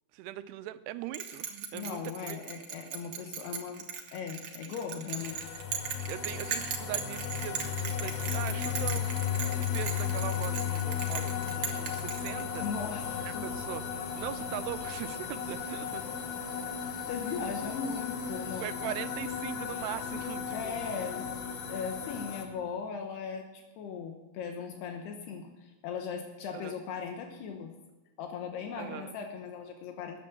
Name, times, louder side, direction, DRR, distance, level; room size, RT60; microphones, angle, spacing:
voice 1, 0.1-2.4 6.1-9.3 9.6-12.7 13.3-13.8 14.1-16.1 18.6-20.8 26.5-26.8 28.8-29.2, right 13 dB, 85° right, 12 dB, 2.7 m, -40 dB
Bell, 1.1-12.8, right 7 dB, 55° right, 2.2 m, -38 dB
voice 2, 1.7-3.9 4.1-5.4 12.6-13.5 17.1-18.9 20.5-21.4 21.7-27.7 28.2-30.2, left 6 dB, 80° left, 4 dB, 3.1 m, -38 dB
sound 1, 5.2-22.5, left 8 dB, 65° left, 2.4 m, -35 dB
13.5 x 9.4 x 7.5 m, 1.1 s
omnidirectional pair, 4.7 m